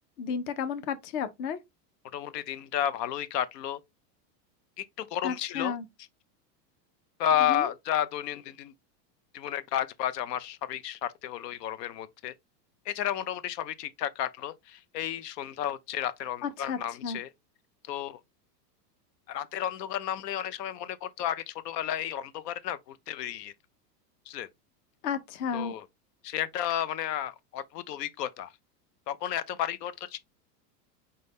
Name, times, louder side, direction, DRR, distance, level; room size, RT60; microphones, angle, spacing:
voice 1, 0.2-1.6 5.2-5.8 7.5-7.7 16.4-17.2 25.0-25.7, left 6 dB, 35° left, 0.4 m, -33 dB
voice 2, 2.1-3.8 4.8-5.8 7.2-8.7 9.3-12.3 12.9-17.3 17.9-18.2 19.3-23.5 24.3-24.5 25.5-25.9 26.2-28.5 29.1-30.2, left 10 dB, 80° left, 0.7 m, -32 dB
5.2 x 2.2 x 3.4 m
supercardioid pair, 150°, 48 cm